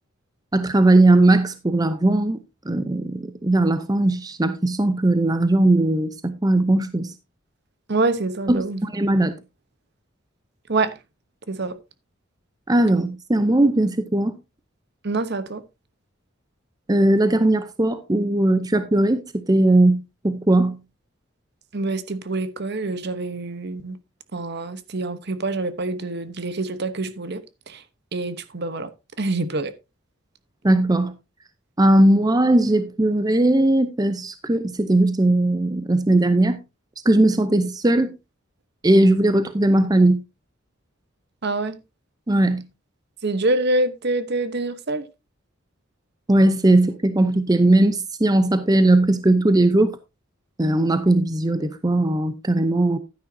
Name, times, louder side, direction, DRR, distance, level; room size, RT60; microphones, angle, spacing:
voice 1, 0.5-2.4 2.7-7.1 8.5-9.3 12.7-14.4 16.9-20.8 30.6-31.1 31.8-36.6 37.0-38.1 38.8-40.2 42.3-42.6 46.3-50.0 50.6-53.0, right 1 dB, 20° right, 0.6 m, -18 dB
voice 2, 7.9-8.8 10.7-11.0 11.5-11.8 15.0-15.6 21.7-24.0 24.3-27.8 28.1-28.9 29.2-29.7 41.4-41.8 43.2-45.1, right 2 dB, 55° right, 1.0 m, -26 dB
11.5 x 10.0 x 2.7 m
head